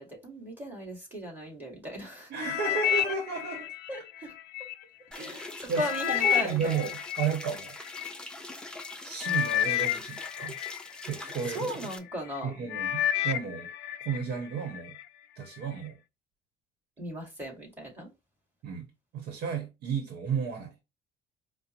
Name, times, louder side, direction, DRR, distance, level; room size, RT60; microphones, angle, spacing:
voice 1, 0.0-2.3 3.9-4.3 5.1-6.8 11.5-12.6 17.0-18.1, equal, 10° right, 1.9 m, -37 dB
voice 2, 2.3-3.7 5.1-5.8 6.2-7.7 9.0-10.6 11.0-11.7 12.4-13.7 14.0-15.0 15.4-16.0 18.6-18.8 19.1-20.8, right 6 dB, 75° right, 1.0 m, -33 dB
sound 1, 2.4-4.7 5.3-8.1 8.8-8.9 9.2-11.6 12.1-12.4 12.7-14.2 14.6-15.0 15.6-15.7, left 11 dB, 80° left, 0.4 m, -30 dB
sound 2, 5.1-12.0, left 2 dB, 5° left, 0.5 m, -43 dB
4.9 x 2.1 x 3.0 m
cardioid pair, 110°, 17 cm